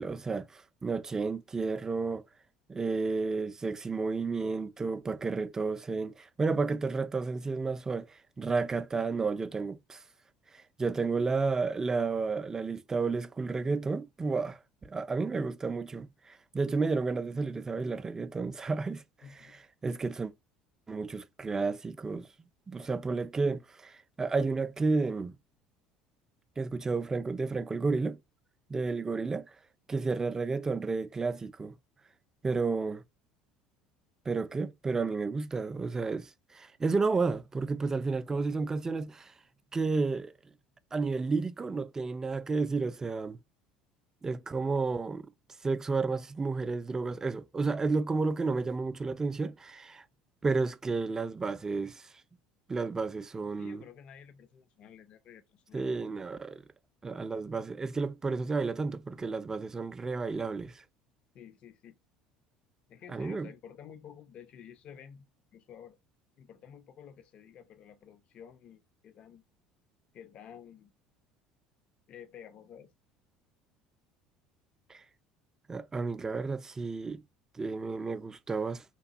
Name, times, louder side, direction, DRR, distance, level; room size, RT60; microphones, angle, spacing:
voice 1, 0.0-2.2 2.7-10.0 10.5-19.0 19.8-20.3 20.9-22.3 22.7-25.4 26.6-28.2 28.7-29.5 29.9-31.8 32.4-33.0 34.3-39.3 39.7-40.3 40.9-43.4 44.2-45.3 45.6-50.0 50.4-52.1 52.7-53.8 55.7-56.6 57.0-60.8 63.1-63.5 74.9-75.0 75.7-77.2 77.5-78.8, right 4 dB, 20° right, 0.3 m, -31 dB
voice 2, 19.2-19.6 53.6-55.9 61.3-62.0 62.9-66.0 66.4-69.4 70.1-70.9 72.1-72.9, left 8 dB, 50° left, 0.4 m, -51 dB
2.9 x 2.3 x 2.6 m
hypercardioid pair, 70°, 2 cm